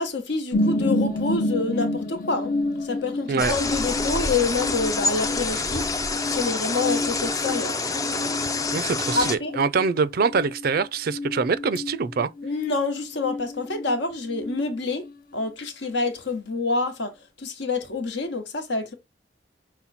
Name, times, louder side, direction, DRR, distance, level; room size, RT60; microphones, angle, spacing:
voice 1, 0.0-2.5 2.8-5.9 6.3-7.8 9.1-9.5 12.4-15.1 15.3-18.9, left 3 dB, 70° left, 1.1 m, -27 dB
sound 1, 0.5-14.0 14.3-15.1 15.5-15.6, left 2 dB, 50° left, 0.7 m, -30 dB
sound 2, 3.4-9.4, left 3 dB, 20° left, 0.4 m, -27 dB
voice 2, 8.7-12.3, right 5 dB, 55° right, 0.4 m, -24 dB
5.7 x 2.2 x 4.1 m
head